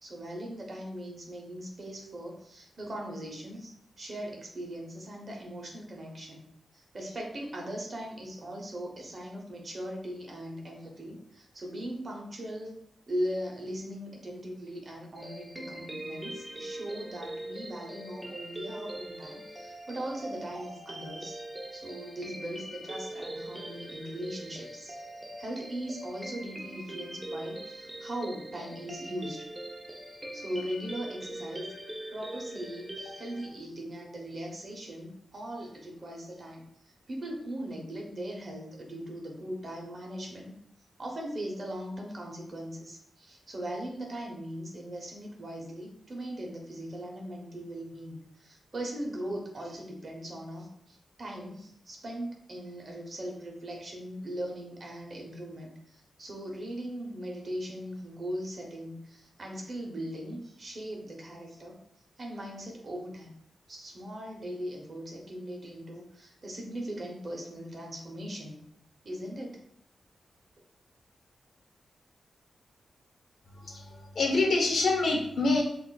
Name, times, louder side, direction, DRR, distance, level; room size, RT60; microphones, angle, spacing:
voice 1, 0.0-3.7 4.0-6.4 6.7-12.7 13.1-21.4 21.7-24.9 25.4-29.5 30.3-31.7 32.1-40.5 41.0-61.8 62.2-63.3 63.7-68.6 69.0-69.6, right 1 dB, 40° right, 0 dB, 0.8 m, -39 dB
sound 1, 15.2-33.5, right 1 dB, 10° right, 0.6 m, -42 dB
voice 2, 73.5-75.6, left 3 dB, 60° left, 1 dB, 0.8 m, -26 dB
6.1 x 2.5 x 2.3 m, 0.70 s
wide cardioid pair, 145°, 0 cm